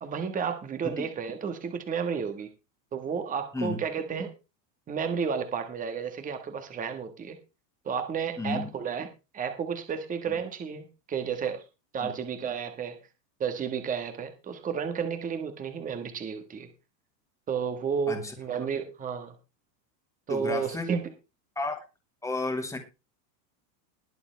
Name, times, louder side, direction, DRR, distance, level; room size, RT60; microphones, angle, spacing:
voice 1, 0.0-2.5 2.9-4.3 4.9-7.4 7.8-9.1 9.3-11.6 11.9-13.0 13.4-16.7 17.5-19.3 20.3-21.0, right 6 dB, 15° right, 7 dB, 1.5 m, -32 dB
voice 2, 8.4-8.7 10.3-10.4 12.0-12.1 18.1-18.3 20.3-20.9 21.6-21.8 22.2-22.8, left 2 dB, 5° left, 5 dB, 2.2 m, -32 dB
21.0 x 7.0 x 3.4 m, 0.28 s
supercardioid pair, 155°, 49 cm